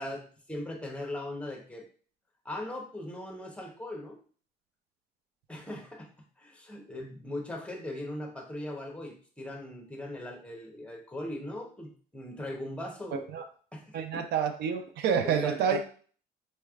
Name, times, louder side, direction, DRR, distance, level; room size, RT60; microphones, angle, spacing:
voice 1, 0.0-1.9 2.4-4.2 5.5-6.1 6.4-13.3 13.7-14.2 15.2-15.8, left 1 dB, 5° left, 1 dB, 0.9 m, -39 dB
voice 2, 13.1-13.4 13.9-15.8, right 7 dB, 75° right, 7 dB, 0.5 m, -28 dB
4.2 x 3.2 x 2.4 m, 0.43 s
cardioid pair, 110°, 17 cm